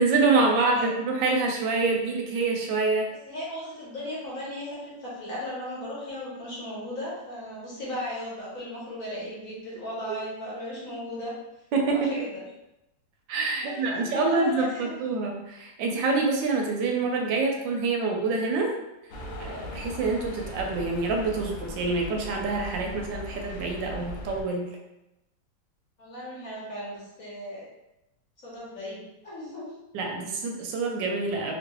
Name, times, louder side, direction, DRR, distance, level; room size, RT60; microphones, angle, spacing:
voice 1, 0.0-3.1 11.7-12.1 13.3-18.7 19.4-24.7 29.9-31.5, right 3 dB, 80° right, 1 dB, 1.2 m, -26 dB
voice 2, 3.3-11.3 11.8-12.4 13.6-14.9 26.0-27.6 28.4-29.7, left 1 dB, 50° left, -7 dB, 1.2 m, -36 dB
sound 1, 19.1-24.4, left 1 dB, 70° left, 0.8 m, -39 dB
3.0 x 2.9 x 2.9 m, 0.92 s
omnidirectional pair, 2.0 m